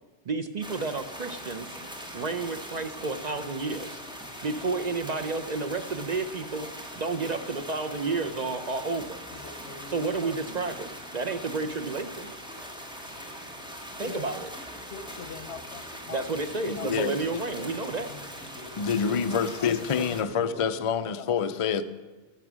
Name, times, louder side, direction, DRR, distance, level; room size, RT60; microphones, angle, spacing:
voice 1, 0.3-1.8 2.1-4.0 4.4-6.7 7.0-9.2 9.9-12.3 14.0-14.5 16.1-18.1, right 3 dB, 50° right, 7 dB, 0.6 m, -31 dB
sound 1, 0.6-20.2, equal, 5° right, 1.3 m, -41 dB
voice 2, 9.3-10.8 14.0-14.2 14.9-16.2 16.6-17.1 17.5-19.1 19.6-20.7 21.2-21.5, left 5 dB, 85° left, 10 dB, 1.2 m, -43 dB
voice 3, 16.7-17.4 18.8-21.8, left 6 dB, 45° left, 10 dB, 0.4 m, -27 dB
13.5 x 7.0 x 6.2 m, 1.2 s
omnidirectional pair, 1.1 m